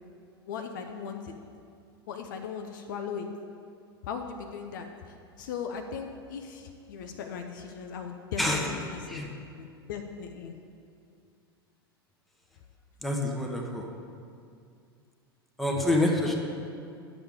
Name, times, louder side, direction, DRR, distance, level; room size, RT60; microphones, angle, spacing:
voice 1, 0.5-1.3 2.1-3.3 4.0-9.2 9.6-10.5 16.2-16.3, left 6 dB, 55° left, 5 dB, 0.6 m, -38 dB
voice 2, 8.4-8.8 9.1-9.3 13.0-13.9 15.6-16.4, left 1 dB, ahead, 0 dB, 1.0 m, -27 dB
10.0 x 7.0 x 3.7 m, 2.4 s
figure-of-eight pair, 85°, 13 cm